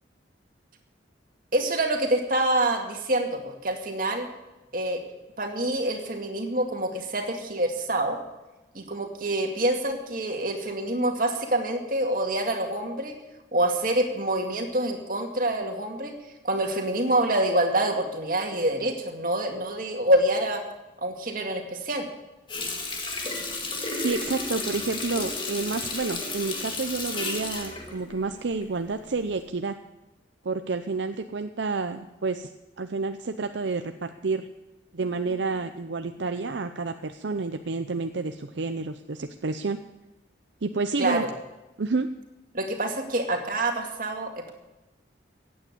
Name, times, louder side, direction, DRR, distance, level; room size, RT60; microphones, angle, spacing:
voice 1, 1.5-4.3 4.7-5.0 5.4-8.2 8.7-13.1 13.5-16.1 16.4-20.6 21.0-22.1 41.0-41.3 42.5-44.5, right 1 dB, 45° right, 3 dB, 2.2 m, -26 dB
Water tap faucet, 22.5-28.9 29.3-29.4, left 3 dB, 25° left, 2.1 m, -32 dB
voice 2, 23.9-29.8 30.4-32.5 32.8-34.5 34.9-39.8 40.6-41.2 41.8-42.1, right 4 dB, 70° right, 8 dB, 0.6 m, -29 dB
15.5 x 8.8 x 8.5 m, 1.0 s
head